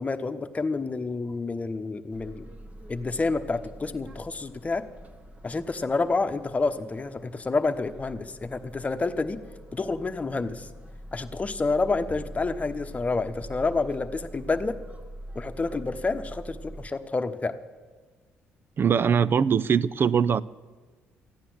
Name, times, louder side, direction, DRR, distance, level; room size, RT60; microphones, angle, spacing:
voice 1, 0.0-2.5 2.9-4.8 5.4-9.4 9.7-10.7 11.1-14.8 15.3-17.6, left 3 dB, 25° left, 1.1 m, -29 dB
sound 1, 2.1-16.9, right 1 dB, 25° right, 1.4 m, -44 dB
voice 2, 18.8-20.4, right 7 dB, 45° right, 0.5 m, -22 dB
14.0 x 9.9 x 7.8 m
supercardioid pair, 70°, 5 cm